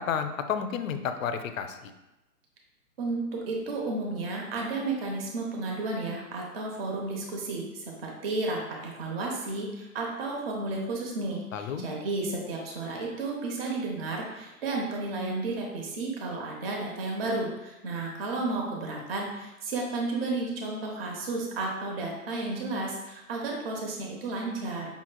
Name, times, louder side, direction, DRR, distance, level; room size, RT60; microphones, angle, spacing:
voice 1, 0.0-1.9 11.5-11.8, left 7 dB, 60° left, 8 dB, 0.5 m, -31 dB
voice 2, 3.0-24.9, right 3 dB, 40° right, -1 dB, 0.9 m, -32 dB
5.4 x 3.0 x 2.2 m, 1.0 s
hypercardioid pair, 145°, 45 cm